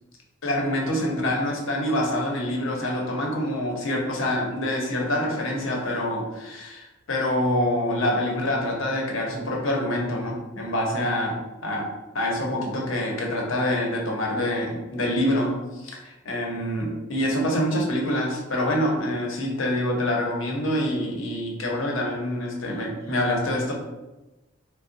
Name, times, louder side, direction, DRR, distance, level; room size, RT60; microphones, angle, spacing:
voice 1, 0.4-11.9 12.1-23.7, left 1 dB, 75° left, 0 dB, 0.8 m, -26 dB
3.4 x 2.1 x 3.8 m, 1.1 s
head